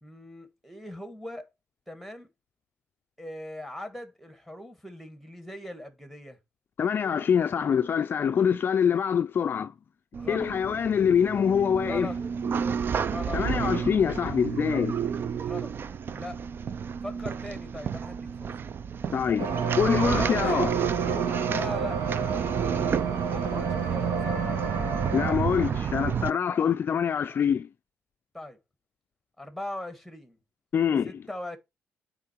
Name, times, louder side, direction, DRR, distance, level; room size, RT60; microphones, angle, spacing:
voice 1, 0.0-1.5 1.9-2.3 3.2-6.4 10.1-10.5 11.8-12.2 13.0-13.4 15.4-15.7 16.1-16.4 17.0-18.5 20.0-20.6 21.4-22.0 23.3-24.5 28.3-28.6 29.4-30.4 31.0-31.6, left 1 dB, ahead, 1.7 m, -39 dB
voice 2, 6.8-9.7 10.3-12.1 13.3-15.0 19.1-20.7 25.1-27.7 30.7-31.1, left 7 dB, 45° left, 0.4 m, -25 dB
sound 1, 10.1-26.3, right 7 dB, 45° right, 0.5 m, -31 dB
sound 2, 19.4-25.3, right 5 dB, 75° right, 1.6 m, -30 dB
8.7 x 3.7 x 4.5 m
cardioid pair, 85°, 5 cm